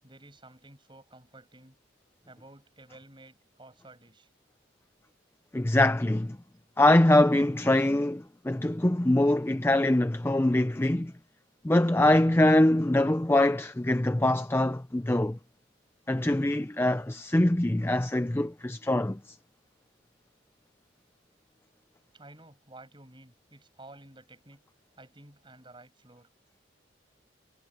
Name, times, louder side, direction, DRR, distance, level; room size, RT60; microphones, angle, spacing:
voice 1, 0.0-1.8 2.3-4.3 22.1-24.6 25.0-26.3, right 2 dB, 25° right, 7.3 m, -52 dB
voice 2, 5.5-6.4 6.8-11.1 11.6-15.4 16.1-19.4, left 1 dB, 10° left, 0.5 m, -23 dB
head